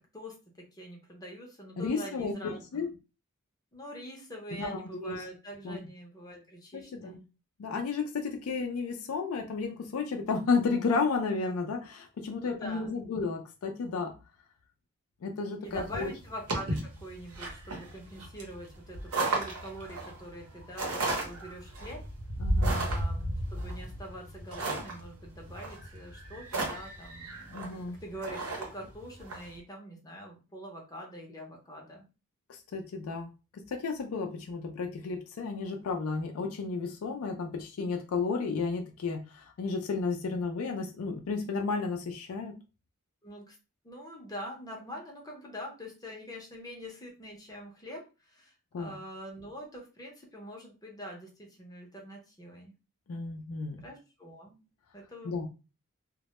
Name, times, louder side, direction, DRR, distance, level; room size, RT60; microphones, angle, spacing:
voice 1, 0.1-2.9 3.7-7.3 12.3-12.9 15.6-22.1 22.7-27.6 27.9-32.0 43.2-43.6 43.8-52.7 53.8-54.6 54.9-55.5, equal, 15° left, -1 dB, 0.6 m, -44 dB
voice 2, 1.8-2.9 4.6-5.2 5.6-5.8 6.7-7.2 7.6-14.1 15.2-16.1 22.4-22.8 27.5-28.0 32.5-33.3 33.5-42.5 48.7-49.0 53.1-53.8 55.2-55.5, left 4 dB, 75° left, 3 dB, 0.4 m, -32 dB
sound 1, 15.7-29.5, right 2 dB, 80° right, 0.8 m, -34 dB
2.1 x 2.0 x 2.9 m, 0.31 s
head